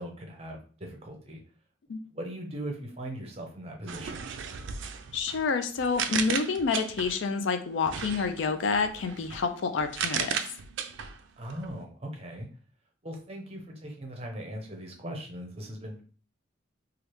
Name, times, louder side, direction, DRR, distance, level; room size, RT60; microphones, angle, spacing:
voice 1, 0.0-1.4 2.1-4.2 11.4-12.5 13.0-16.0, right 1 dB, 30° right, 2 dB, 0.6 m, -39 dB
sound 1, 3.9-7.3 7.8-11.7, right 7 dB, 65° right, 0.3 m, -35 dB
voice 2, 5.1-10.4, left 4 dB, 70° left, 8 dB, 0.4 m, -28 dB
3.1 x 2.4 x 3.0 m, 0.41 s
head